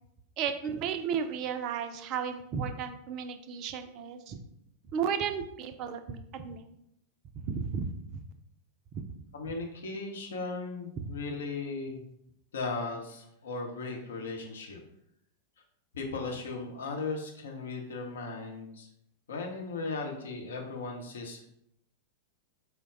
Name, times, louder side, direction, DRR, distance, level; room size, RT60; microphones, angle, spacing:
voice 1, 0.4-4.4 4.9-6.6 7.3-8.2 8.9-9.0, right 7 dB, 40° right, 7 dB, 0.4 m, -34 dB
voice 2, 9.3-12.0 12.5-14.8 15.9-18.9 19.3-21.6, left 3 dB, 65° left, 1 dB, 0.8 m, -37 dB
4.5 x 2.2 x 3.6 m, 0.77 s
figure-of-eight pair, 90°, 0 cm